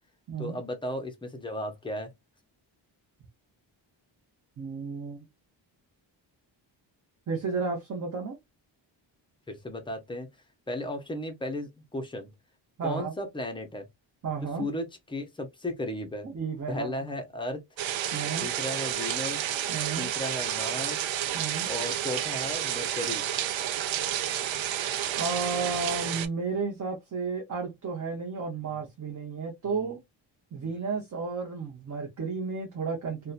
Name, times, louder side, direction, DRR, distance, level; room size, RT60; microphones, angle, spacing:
voice 1, 0.4-2.1 9.5-10.3 10.7-12.3 12.8-13.9 14.6-16.3 16.7-17.6 18.4-19.4 20.0-21.0 21.3-23.2 28.7-28.8 29.6-30.0 30.6-30.7, left 1 dB, 10° left, 0.5 m, -35 dB
voice 2, 4.6-5.3 7.3-8.4 12.8-13.1 14.2-14.7 16.2-17.0 18.1-18.5 19.7-20.1 21.3-21.7 25.2-30.0 30.5-33.3, right 4 dB, 40° right, 0.7 m, -33 dB
sound 1, 17.8-26.3, right 11 dB, 75° right, 0.5 m, -30 dB
2.7 x 2.2 x 2.3 m
wide cardioid pair, 165°, 46 cm